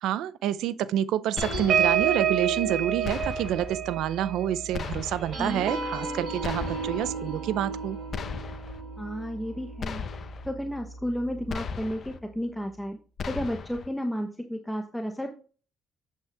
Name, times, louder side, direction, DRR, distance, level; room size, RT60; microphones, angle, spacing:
voice 1, 0.0-8.0, right 11 dB, 85° right, 0.5 m, -28 dB
sound 1, 1.4-2.0 3.0-3.7 4.7-5.4 6.4-7.1 8.1-8.8 9.8-10.5 11.5-12.2 13.2-13.9, left 6 dB, 55° left, 0.9 m, -36 dB
sound 2, 1.4-10.3 10.7-10.9 11.2-11.5, right 7 dB, 65° right, 3.3 m, -30 dB
voice 2, 9.0-13.0 13.2-15.3, equal, 5° left, 1.0 m, -32 dB
8.3 x 8.0 x 3.5 m
cardioid pair, 90°, 0 cm